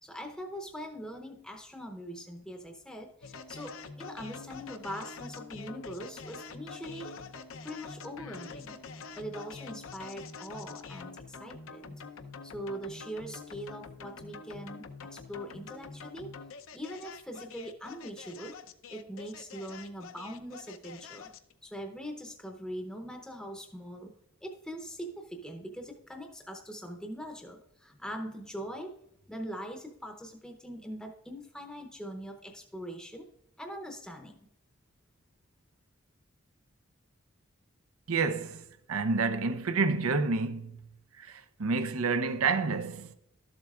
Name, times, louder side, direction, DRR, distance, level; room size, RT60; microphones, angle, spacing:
voice 1, 0.0-7.1 7.6-8.8 9.2-12.0 12.4-16.3 16.7-18.6 18.9-21.3 21.6-24.1 24.4-28.9 29.3-33.3 33.6-34.5, equal, 5° left, 0.7 m, -42 dB
sound 1, 3.2-21.5, left 5 dB, 75° left, 0.6 m, -46 dB
voice 2, 38.1-40.8 41.2-43.1, right 4 dB, 90° right, 0.6 m, -29 dB
12.5 x 7.4 x 2.4 m
head